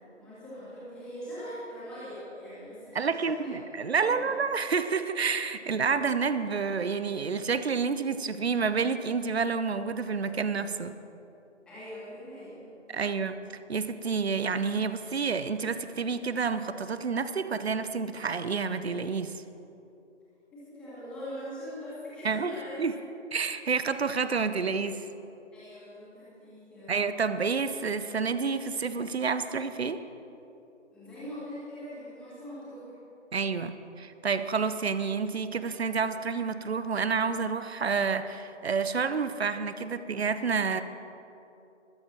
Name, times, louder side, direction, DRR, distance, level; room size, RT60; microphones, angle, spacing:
voice 1, 0.0-3.5 4.0-4.3 11.7-13.0 20.5-22.8 25.5-26.9 30.9-32.9 39.9-40.0, equal, ahead, -12 dB, 2.2 m, -42 dB
voice 2, 2.9-11.0 12.9-13.4 13.7-19.4 22.2-22.5 22.8-22.9 23.3-25.0 26.9-30.0 33.3-40.8, right 5 dB, 60° right, 12 dB, 0.7 m, -29 dB
20.5 x 7.7 x 4.5 m, 2.8 s
figure-of-eight pair, 155°, 37 cm